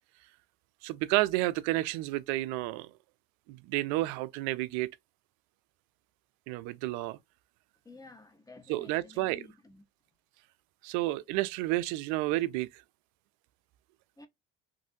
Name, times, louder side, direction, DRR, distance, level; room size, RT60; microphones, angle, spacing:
voice 1, 0.8-2.9 3.5-4.9 6.5-7.2 8.7-9.4 10.8-12.8, right 18 dB, 70° right, 0.5 m, -30 dB
voice 2, 7.8-9.8 14.2-14.3, left 3 dB, 10° left, 0.7 m, -52 dB
3.2 x 2.6 x 2.7 m
supercardioid pair, 100°, 30 cm